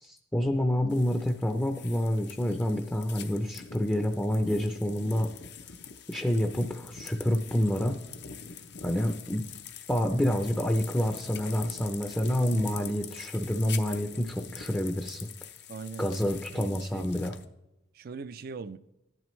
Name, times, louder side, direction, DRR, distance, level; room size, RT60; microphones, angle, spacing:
voice 1, 0.0-5.3 6.1-8.0 8.8-9.4 9.9-15.3 16.0-17.3, equal, 10° left, 0.5 m, -28 dB
sound 1, 0.9-17.5, left 8 dB, 60° left, 0.6 m, -45 dB
voice 2, 15.7-17.1 17.9-18.8, right 5 dB, 50° right, 0.4 m, -41 dB
13.0 x 10.5 x 3.1 m
head